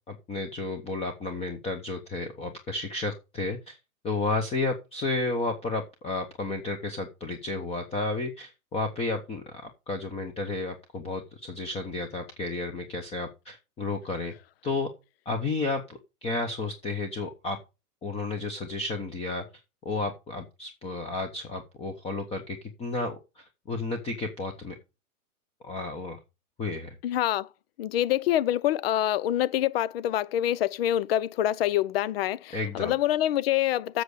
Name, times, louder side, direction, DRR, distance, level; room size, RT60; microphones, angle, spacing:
voice 1, 0.1-3.8 4.0-14.3 14.6-14.9 15.2-17.6 18.0-19.4 19.8-24.8 25.6-26.2 26.6-27.0 32.5-33.0, left 3 dB, 15° left, 1.0 m, -32 dB
voice 2, 27.0-27.5 27.8-34.0, left 12 dB, 40° left, 0.6 m, -26 dB
7.8 x 7.0 x 6.5 m
hypercardioid pair, 145°, 46 cm